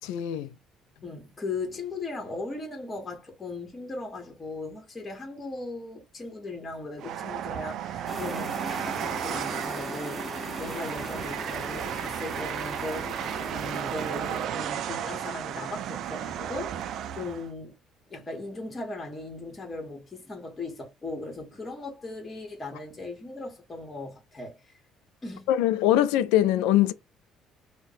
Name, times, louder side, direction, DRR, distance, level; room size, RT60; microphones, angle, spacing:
voice 1, 0.0-0.5 25.5-26.9, left 13 dB, 90° left, 0.3 m, -22 dB
voice 2, 1.0-17.7 18.1-24.7 25.2-25.5, left 2 dB, 30° left, 1.3 m, -38 dB
Train, 7.0-17.5, right 10 dB, 65° right, 0.3 m, -34 dB
sound 1, 8.1-14.5, equal, 5° right, 0.9 m, -39 dB
2.5 x 2.1 x 4.0 m
supercardioid pair, 85°, 0 cm